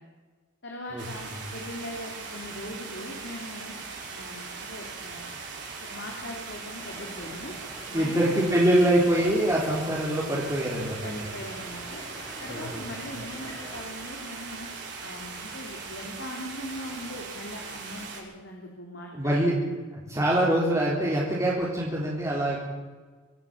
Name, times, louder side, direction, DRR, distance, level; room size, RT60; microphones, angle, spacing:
voice 1, 0.6-3.7 4.1-5.3 5.8-7.5 7.9-8.3 11.0-12.0 12.4-14.7 15.0-19.6, left 1 dB, 60° left, 0 dB, 3.5 m, -40 dB
sound 1, 1.0-18.2, right 4 dB, 55° right, 6.6 m, -40 dB
sound 2, 6.8-13.8, left 1 dB, 15° left, 3.5 m, -46 dB
voice 2, 7.9-11.2 12.5-13.1 19.1-19.6 19.9-22.6, right 1 dB, 15° right, -6 dB, 3.8 m, -24 dB
26.0 x 12.0 x 8.7 m, 1.4 s
head